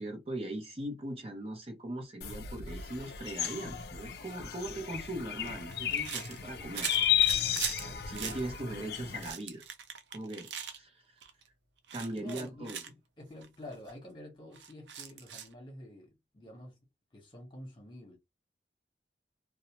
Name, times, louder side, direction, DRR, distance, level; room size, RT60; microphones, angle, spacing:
voice 1, 0.0-6.9 7.8-9.6 10.1-11.2 11.9-12.8, right 1 dB, 30° right, 0.6 m, -40 dB
sound 1, 2.2-9.3, left 10 dB, 60° left, 0.4 m, -33 dB
sound 2, 3.4-3.6 4.9-7.8 8.1-8.4 9.0-10.8 11.2-11.5 11.9-12.9 13.4-13.5 13.7-13.9 14.5-15.5, right 8 dB, 85° right, 0.5 m, -40 dB
voice 2, 12.1-16.8 17.1-18.2, left 1 dB, 25° left, 1.1 m, -48 dB
2.6 x 2.0 x 2.9 m
head